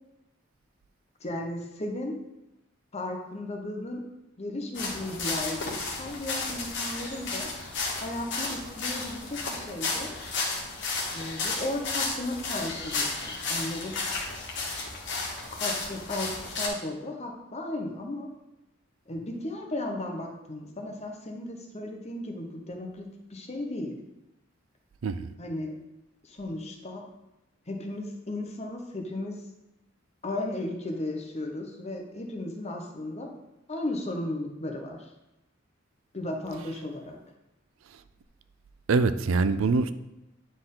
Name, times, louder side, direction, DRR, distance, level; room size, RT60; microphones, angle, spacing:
voice 1, 1.2-2.1 2.9-4.0 4.4-7.5 8.0-10.2 11.1-14.0 15.5-18.3 19.1-23.9 25.4-25.7 26.2-27.0 27.7-29.3 30.2-33.3 33.7-35.1 36.1-37.2, left 1 dB, 35° left, 2 dB, 1.0 m, -35 dB
sound 1, 4.7-16.7, left 3 dB, 60° left, 1.4 m, -33 dB
voice 2, 38.9-39.9, right 4 dB, 90° right, 12 dB, 0.4 m, -24 dB
9.8 x 4.3 x 3.8 m, 0.94 s
head